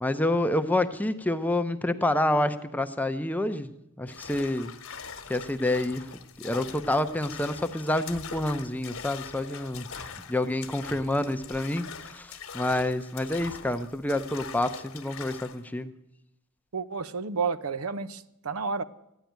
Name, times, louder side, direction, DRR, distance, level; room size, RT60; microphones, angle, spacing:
voice 1, 0.0-3.7 4.0-4.7 5.3-6.1 6.4-15.9, left 1 dB, 5° left, 9 dB, 0.6 m, -28 dB
sound 1, 4.1-15.6, left 6 dB, 70° left, 1.3 m, -43 dB
voice 2, 16.7-18.8, right 5 dB, 80° right, 14 dB, 0.7 m, -31 dB
14.5 x 10.0 x 9.3 m, 0.86 s
head